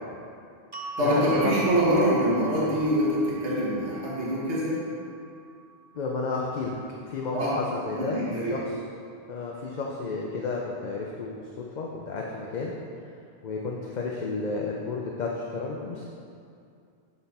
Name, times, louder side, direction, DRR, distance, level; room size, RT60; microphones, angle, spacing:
sound 1, 0.7-6.9, right 4 dB, 40° right, 0.3 m, -42 dB
voice 1, 0.8-4.8 7.3-7.5 8.0-8.5, equal, 85° right, -7 dB, 1.5 m, -25 dB
voice 2, 6.0-6.8 7.1-7.4 7.7-8.6 9.3-11.4 11.8-12.7 13.4-16.1, left 3 dB, 50° left, -2 dB, 0.6 m, -32 dB
7.7 x 4.1 x 4.1 m, 2.4 s
omnidirectional pair, 1.1 m